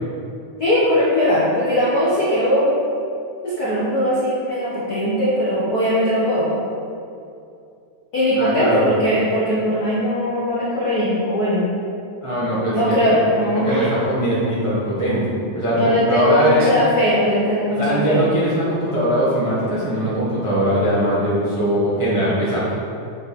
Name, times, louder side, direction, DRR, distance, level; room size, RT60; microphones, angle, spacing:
voice 1, 0.6-2.7 3.4-6.5 8.1-11.7 12.7-13.9 15.7-18.2, equal, 65° left, -9 dB, 0.9 m, -19 dB
voice 2, 8.4-8.8 12.2-12.8 13.4-16.7 17.8-22.7, equal, 40° right, -9 dB, 0.4 m, -20 dB
8.0 x 5.5 x 4.3 m, 2.5 s
omnidirectional pair, 3.9 m